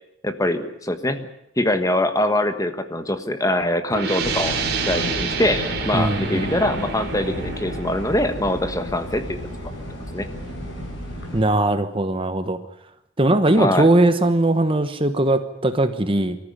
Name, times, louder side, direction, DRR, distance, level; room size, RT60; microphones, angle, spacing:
voice 1, 0.2-1.3 1.6-4.5 4.9-9.4 10.1-10.3 13.5-13.9, left 1 dB, 15° left, 9 dB, 1.4 m, -23 dB
sound 1, 3.9-9.4, right 6 dB, 50° right, 3.3 m, -30 dB
sound 2, 4.2-11.4, equal, 55° left, 7.5 m, -32 dB
voice 2, 5.9-6.5 11.3-12.6 13.2-16.4, right 1 dB, 25° right, 9 dB, 1.1 m, -19 dB
25.5 x 14.0 x 9.7 m, 0.82 s
head